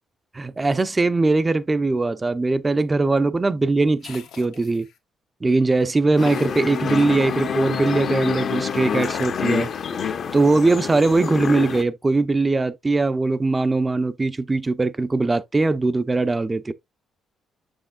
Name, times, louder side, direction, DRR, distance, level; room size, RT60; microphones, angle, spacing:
voice 1, 0.3-4.9 5.4-9.7 10.3-16.7, right 3 dB, 20° right, 0.6 m, -21 dB
sound 1, 4.0-5.0 6.1-7.4 8.7-9.7, left 8 dB, 85° left, 1.4 m, -42 dB
sound 2, 6.2-11.8, left 7 dB, 55° left, 0.9 m, -27 dB
6.9 x 6.3 x 2.4 m
cardioid pair, 90°, 0 cm